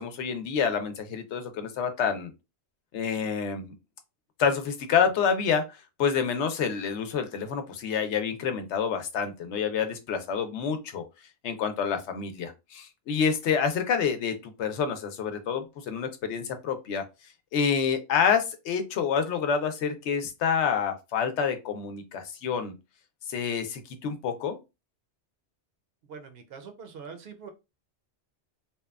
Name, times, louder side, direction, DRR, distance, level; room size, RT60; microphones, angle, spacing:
voice 1, 0.0-2.3 2.9-3.7 4.4-11.0 11.4-17.0 17.5-22.7 23.3-24.6, left 6 dB, 80° left, 7 dB, 0.9 m, -28 dB
voice 2, 26.0-27.5, right 6 dB, 65° right, 6 dB, 0.7 m, -43 dB
2.9 x 2.2 x 2.3 m, 0.25 s
omnidirectional pair, 1.2 m